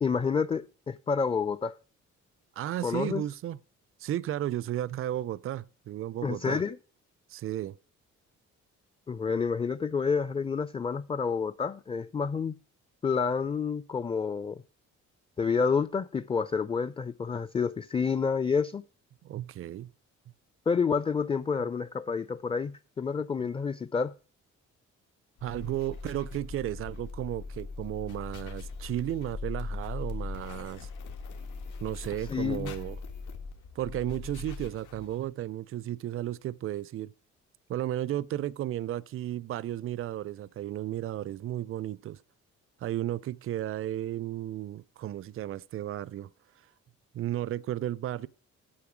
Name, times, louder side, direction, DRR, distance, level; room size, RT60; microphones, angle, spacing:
voice 1, 0.0-1.7 2.8-3.2 6.2-6.8 9.1-12.5 13.0-14.6 15.4-18.8 20.7-24.1 32.3-32.7, left 5 dB, 20° left, 0.4 m, -29 dB
voice 2, 2.6-3.6 4.0-6.6 7.3-7.8 19.2-19.9 25.4-30.9 31.8-33.0 33.8-37.1 37.7-42.2 42.8-46.3 47.1-48.3, right 12 dB, 45° right, 0.4 m, -34 dB
sound 1, 25.4-35.3, left 4 dB, 80° left, 1.8 m, -40 dB
8.6 x 7.7 x 6.0 m
cardioid pair, 90°, 30 cm